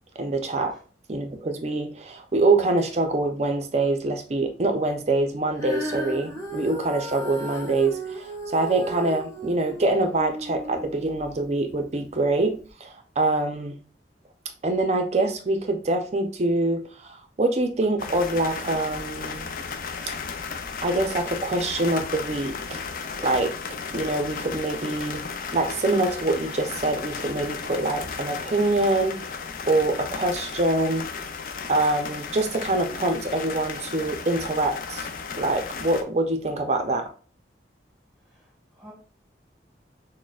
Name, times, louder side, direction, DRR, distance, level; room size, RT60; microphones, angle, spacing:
voice 1, 0.2-0.7 1.1-13.7 14.6-19.5 20.8-22.8 23.2-23.5 23.9-25.2 25.5-29.4 29.7-31.1 31.7-35.1 35.4-37.1, right 2 dB, 35° right, 6 dB, 0.5 m, -25 dB
Female singing, 5.6-11.9 12.6-12.7, right 1 dB, 20° left, 0.9 m, -35 dB
sound 1, 18.0-36.0, left 5 dB, 50° left, 0.4 m, -35 dB
voice 2, 38.2-38.9, equal, ahead, -4 dB, 1.5 m, -51 dB
6.2 x 2.1 x 2.3 m, 0.40 s
head